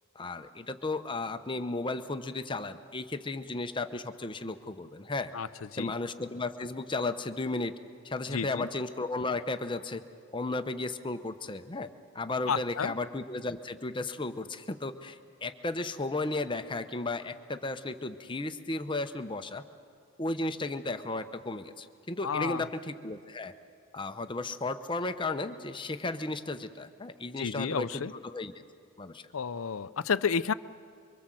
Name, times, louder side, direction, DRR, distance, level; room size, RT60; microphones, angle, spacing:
voice 1, 0.1-5.3 5.7-7.7 8.0-10.0 10.3-11.9 12.1-19.6 20.2-23.5 23.9-28.6 29.0-29.2, left 2 dB, 25° left, 9 dB, 0.8 m, -34 dB
voice 2, 8.3-8.7 12.5-12.9 22.2-22.7 27.4-28.1 29.3-30.5, left 6 dB, 80° left, 15 dB, 0.6 m, -31 dB
24.5 x 24.0 x 7.6 m, 2.4 s
head